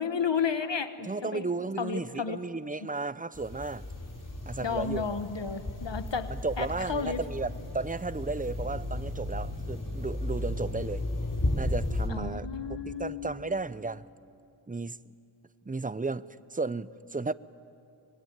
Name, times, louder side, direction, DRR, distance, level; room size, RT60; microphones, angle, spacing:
voice 1, 0.0-1.5 1.8-2.4 4.6-6.3 6.6-7.2 12.1-13.3, left 6 dB, 65° left, 1.3 m, -32 dB
voice 2, 1.0-3.8 4.5-5.2 6.3-11.0 11.5-12.5 12.9-14.0 14.7-15.0 15.7-16.3 16.5-17.3, right 3 dB, 15° right, 0.6 m, -34 dB
sound 1, 3.3-12.1, left 1 dB, 40° left, 4.8 m, -34 dB
25.0 x 22.5 x 9.4 m
wide cardioid pair, 45°, 48 cm